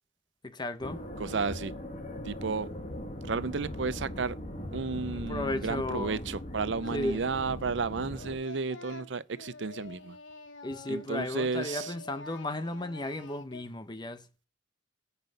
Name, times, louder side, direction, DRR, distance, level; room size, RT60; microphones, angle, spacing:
voice 1, 0.4-1.0 5.1-6.2 6.9-7.2 10.6-14.2, left 1 dB, 20° left, 0.7 m, -34 dB
sound 1, 0.8-8.4, left 1 dB, 40° left, 1.5 m, -40 dB
voice 2, 1.2-1.7 2.3-2.7 3.3-4.3 4.7-10.2 10.9-11.9, right 4 dB, 65° right, 0.6 m, -32 dB
Singing, 6.8-7.4 7.6-11.3 11.6-13.6, left 3 dB, 75° left, 1.2 m, -48 dB
9.4 x 5.6 x 7.7 m
head